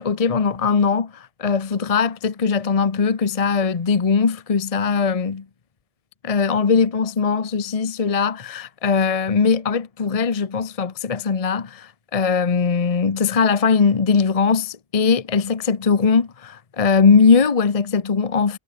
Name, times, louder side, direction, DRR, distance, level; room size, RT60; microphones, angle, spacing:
voice 1, 0.0-5.4 6.2-18.6, left 5 dB, 35° left, 0.9 m, -20 dB
omnidirectional pair, 1.1 m